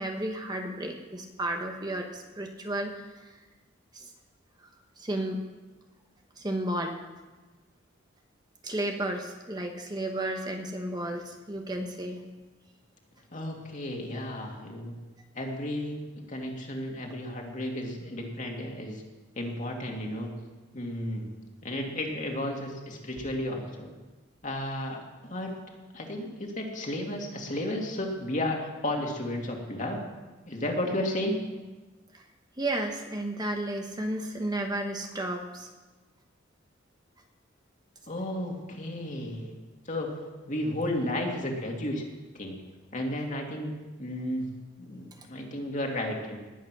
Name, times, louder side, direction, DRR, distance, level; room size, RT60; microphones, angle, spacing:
voice 1, 0.0-3.3 3.9-4.1 5.0-5.4 6.4-7.0 8.6-12.2 32.1-32.2 32.6-35.7 45.2-45.3, right 1 dB, 20° right, 3 dB, 1.2 m, -33 dB
voice 2, 13.3-15.0 15.3-15.9 16.3-19.0 19.4-20.3 20.7-21.3 21.6-23.9 24.4-25.6 25.9-30.0 30.5-31.4 38.1-39.5 39.9-40.2 40.5-42.0 42.4-42.6 42.9-44.5 44.8-46.4, left 1 dB, 40° left, 1 dB, 2.5 m, -33 dB
19.5 x 8.8 x 6.2 m, 1.2 s
head